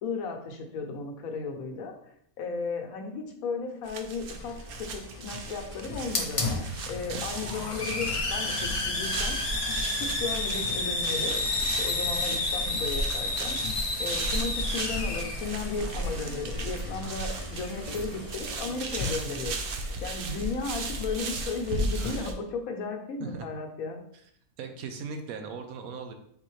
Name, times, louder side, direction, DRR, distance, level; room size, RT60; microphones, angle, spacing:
voice 1, 0.0-1.9 2.4-9.4 10.0-13.6 14.0-19.5 20.0-24.0, left 4 dB, 80° left, 4 dB, 1.1 m, -35 dB
sound 1, 3.8-22.3, right 3 dB, 65° right, 0.5 m, -36 dB
Hiss, 4.3-22.2, left 2 dB, 45° left, 0.4 m, -32 dB
voice 2, 24.6-26.1, right 5 dB, 85° right, 6 dB, 1.1 m, -38 dB
4.1 x 3.6 x 3.1 m, 0.70 s
omnidirectional pair, 1.5 m